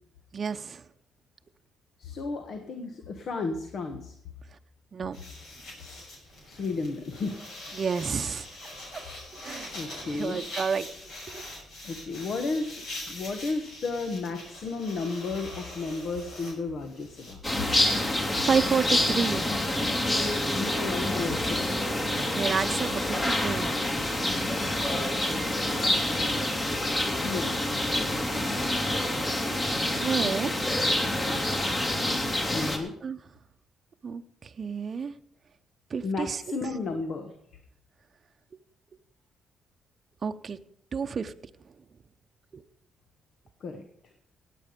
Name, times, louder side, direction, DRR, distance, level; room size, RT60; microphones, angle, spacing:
voice 1, 0.3-0.8 4.9-5.2 7.8-8.5 9.4-9.7 10.0-10.9 11.3-11.4 18.4-19.5 22.1-23.7 30.0-30.5 33.0-33.2 34.0-34.2 34.6-35.1 35.9-36.4 40.2-40.6 40.9-41.3 42.5-42.6, right 6 dB, 45° right, 9 dB, 0.8 m, -29 dB
voice 2, 2.0-4.1 6.5-7.3 9.7-10.4 11.8-17.4 20.5-21.9 27.2-27.6 32.5-32.9 36.0-37.3 43.6-43.8, left 3 dB, 60° left, 7 dB, 1.4 m, -33 dB
sound 1, 5.1-17.3, left 1 dB, 75° left, 7.4 m, -43 dB
sound 2, 17.4-32.8, left 1 dB, 25° left, 2.7 m, -27 dB
17.5 x 8.5 x 5.2 m, 0.73 s
cardioid pair, 90°, 0 cm